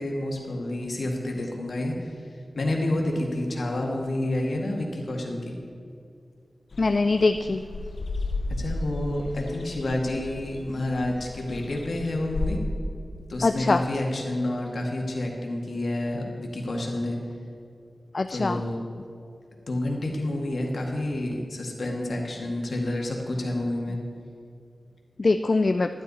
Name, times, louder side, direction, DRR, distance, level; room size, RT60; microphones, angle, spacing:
voice 1, 0.0-2.1 2.5-5.5 8.5-12.6 13.3-17.2 18.3-18.8 19.7-24.0, left 1 dB, 65° left, 0 dB, 1.8 m, -29 dB
sound 1, 6.7-12.6, left 2 dB, 85° left, 0.8 m, -34 dB
voice 2, 6.8-7.6 13.4-13.8 18.1-18.6 25.2-25.9, left 3 dB, 50° left, 8 dB, 0.3 m, -22 dB
12.0 x 11.0 x 4.2 m, 2.5 s
wide cardioid pair, 110°, 0 cm